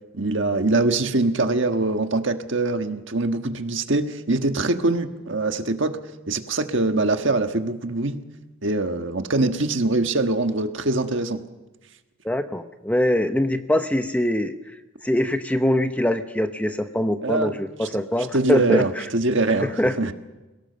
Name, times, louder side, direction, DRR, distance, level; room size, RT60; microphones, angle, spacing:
voice 1, 0.1-6.0 6.3-8.2 8.6-11.4 17.2-17.9 18.3-19.7 20.0-20.1, right 2 dB, 60° right, 6 dB, 1.5 m, -23 dB
voice 2, 12.2-14.6 15.0-19.0 19.6-20.0, left 1 dB, 5° left, 8 dB, 0.8 m, -23 dB
27.0 x 18.0 x 6.9 m, 1.1 s
head